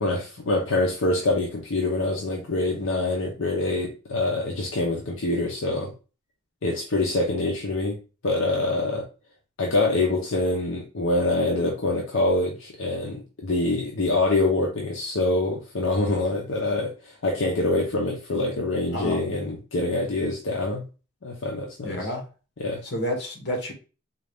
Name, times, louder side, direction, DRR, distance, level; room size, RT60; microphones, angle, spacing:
voice 1, 0.0-5.9 6.6-8.0 8.2-9.0 9.6-20.8 21.2-22.0 22.6-22.8, left 2 dB, 75° left, -1 dB, 0.7 m, -25 dB
voice 2, 21.8-22.2 22.8-23.7, equal, 55° left, 1 dB, 1.2 m, -29 dB
3.8 x 2.4 x 3.4 m, 0.33 s
head